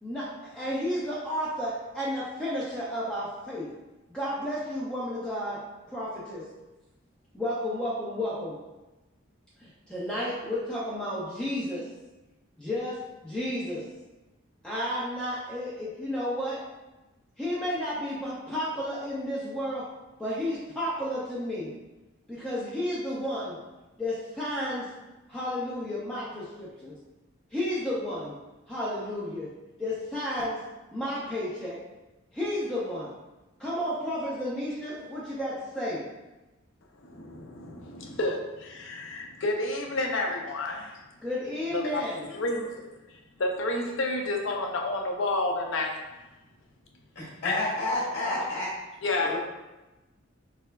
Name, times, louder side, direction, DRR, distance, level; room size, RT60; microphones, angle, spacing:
voice 1, 0.0-3.7 4.1-5.6 5.9-6.5 7.3-8.6 9.6-11.9 12.6-13.8 14.6-16.6 17.4-19.8 20.2-21.7 22.3-23.6 24.0-24.9 25.3-27.0 27.5-28.3 28.7-29.5 29.8-30.6 30.9-31.8 32.3-33.1 33.6-36.0 41.2-42.3, left 1 dB, 5° left, -8 dB, 0.5 m, -32 dB
voice 2, 37.0-41.0 41.7-42.0 42.3-42.9 43.4-46.0 47.4-47.6 49.0-49.3, left 2 dB, 65° left, 1 dB, 0.6 m, -30 dB
voice 3, 47.1-48.7 49.2-49.4, left 1 dB, 45° left, -7 dB, 1.0 m, -30 dB
4.8 x 3.3 x 2.2 m, 1.1 s
head